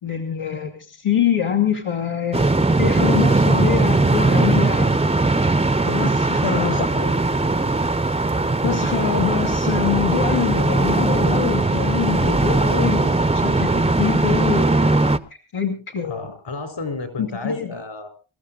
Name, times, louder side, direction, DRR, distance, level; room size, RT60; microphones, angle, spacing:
voice 1, 0.0-2.5 2.8-5.0 5.9-6.9 8.6-15.0 15.5-16.2 17.2-17.7, left 8 dB, 90° left, 0 dB, 2.6 m, -24 dB
sound 1, 2.3-15.2, right 2 dB, 15° right, 0.7 m, -19 dB
voice 2, 6.5-7.1 16.0-18.1, left 3 dB, 65° left, 8 dB, 4.3 m, -32 dB
27.0 x 14.5 x 2.5 m, 0.32 s
wide cardioid pair, 130°, 48 cm